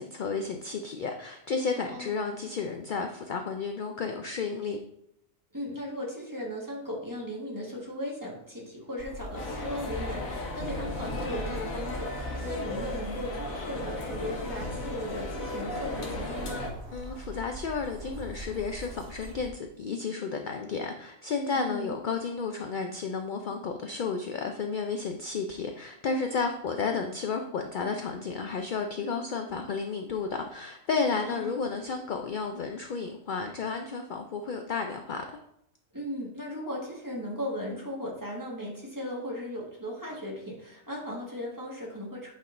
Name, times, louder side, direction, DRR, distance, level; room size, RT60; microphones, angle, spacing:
voice 1, 0.0-4.8 16.9-35.2, left 4 dB, 60° left, 4 dB, 0.5 m, -32 dB
voice 2, 5.5-16.5 21.5-21.9 31.2-31.6 35.9-42.3, left 1 dB, 15° right, -3 dB, 1.5 m, -37 dB
sound 1, 9.0-19.5, right 1 dB, 50° right, 1.0 m, -41 dB
sound 2, 9.3-16.7, left 2 dB, 80° left, 1.5 m, -36 dB
8.6 x 5.5 x 2.5 m, 0.76 s
omnidirectional pair, 1.4 m